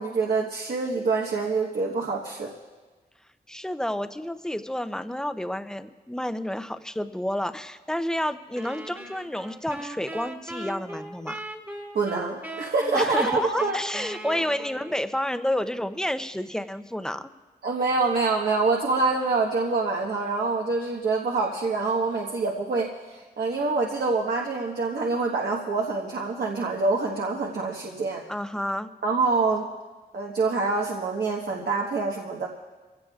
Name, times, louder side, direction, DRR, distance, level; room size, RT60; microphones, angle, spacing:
voice 1, 0.0-2.5 11.9-13.8 14.2-14.4 17.6-28.2 29.0-29.6 30.1-32.5, right 3 dB, 85° right, -2 dB, 1.3 m, -26 dB
voice 2, 3.5-11.4 12.9-17.3 28.3-28.9, left 1 dB, 5° left, 10 dB, 0.5 m, -30 dB
sound 1, 8.6-15.1, right 1 dB, 10° right, 1.3 m, -39 dB
25.0 x 16.5 x 2.4 m, 1.3 s
wide cardioid pair, 130°, 16 cm